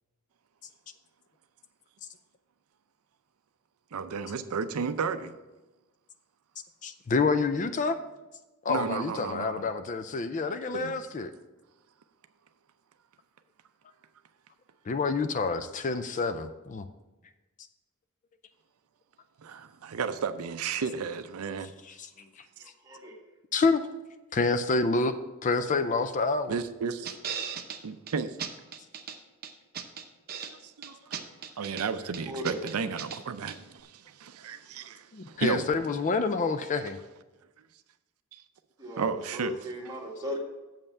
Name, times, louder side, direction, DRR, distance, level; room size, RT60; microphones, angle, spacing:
voice 1, 3.9-5.4 8.7-9.7 10.7-10.9 19.4-21.7 26.5-27.1 27.8-28.4 30.4-31.3 31.6-35.7 38.3-38.4 39.0-39.5, right 5 dB, 75° right, 0.5 m, -33 dB
voice 2, 6.8-8.0 8.6-11.3 14.9-16.9 22.0-22.1 23.5-23.8 24.3-25.1 25.4-26.5 35.1-37.0, left 4 dB, 35° left, 0.4 m, -27 dB
voice 3, 22.6-23.2 32.0-32.6 38.8-40.4, equal, 15° right, 1.5 m, -37 dB
sound 1, 27.0-27.8 28.1-28.2 28.4-29.2 29.4-30.5 30.8-31.9 32.1-33.2 33.5-33.6, right 7 dB, 45° right, 0.8 m, -37 dB
7.3 x 5.5 x 7.1 m
head